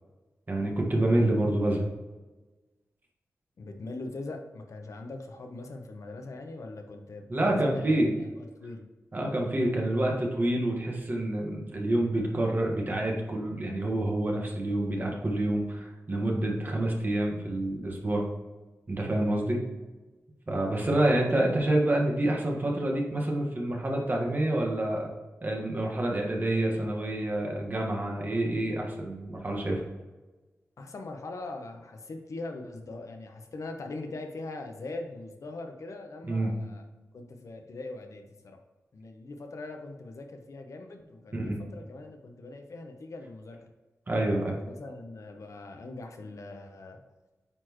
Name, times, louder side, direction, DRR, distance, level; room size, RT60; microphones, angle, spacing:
voice 1, 0.5-1.9 7.3-8.1 9.1-18.2 18.9-19.6 20.5-25.1 25.4-29.8 36.2-36.5 41.3-41.6 44.1-44.5, right 1 dB, 35° right, -1 dB, 1.6 m, -27 dB
voice 2, 3.6-8.8 20.8-21.4 30.8-36.9 37.1-38.6 38.9-43.7 44.2-47.0, left 2 dB, 70° left, 4 dB, 0.9 m, -41 dB
8.8 x 4.4 x 3.0 m, 1.2 s
wide cardioid pair, 100°, 6 cm